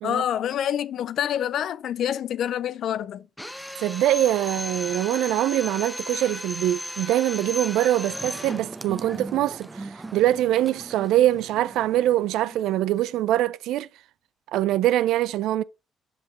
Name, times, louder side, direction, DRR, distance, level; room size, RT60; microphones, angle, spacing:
voice 1, 0.0-3.3, left 10 dB, 70° left, 0.4 m, -27 dB
Drill, 3.4-8.7, left 1 dB, 10° left, 1.0 m, -35 dB
voice 2, 3.8-13.9 14.5-15.6, right 13 dB, 80° right, 0.3 m, -23 dB
sound 1, 8.1-13.1, right 3 dB, 25° right, 0.7 m, -40 dB
8.0 x 5.8 x 2.9 m
supercardioid pair, 65°, 0 cm